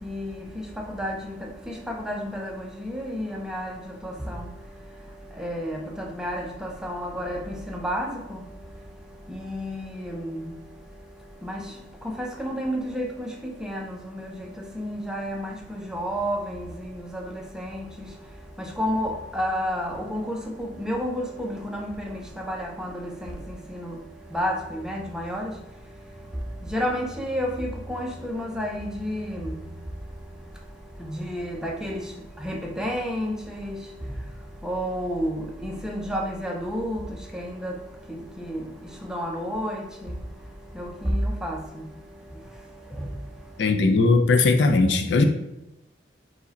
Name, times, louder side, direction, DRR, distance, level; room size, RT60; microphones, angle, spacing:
voice 1, 0.0-4.5 5.3-8.4 9.3-10.5 11.4-11.7 12.0-18.1 18.6-24.0 24.3-25.5 26.6-29.6 31.0-32.1 32.4-33.9 34.6-37.8 38.1-40.2 40.7-41.9 42.9-43.1, equal, 5° right, 0.4 m, -31 dB
voice 2, 43.6-45.3, left 3 dB, 70° left, 0.4 m, -19 dB
4.7 x 2.1 x 3.9 m
head